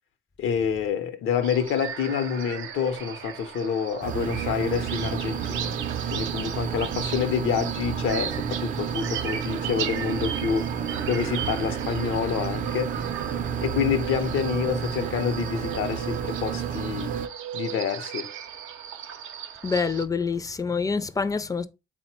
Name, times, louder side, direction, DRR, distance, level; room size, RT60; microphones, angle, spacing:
voice 1, 0.4-5.7 6.1-10.7 11.1-12.9 13.6-17.1 17.5-18.3, left 7 dB, 75° left, 0.7 m, -27 dB
sound 1, 1.4-20.0, right 8 dB, 85° right, 0.6 m, -36 dB
sound 2, 4.0-17.3, right 7 dB, 40° right, 0.5 m, -31 dB
voice 2, 19.6-21.7, left 5 dB, 20° left, 0.4 m, -26 dB
3.9 x 2.1 x 4.3 m
cardioid pair, 90°, 20 cm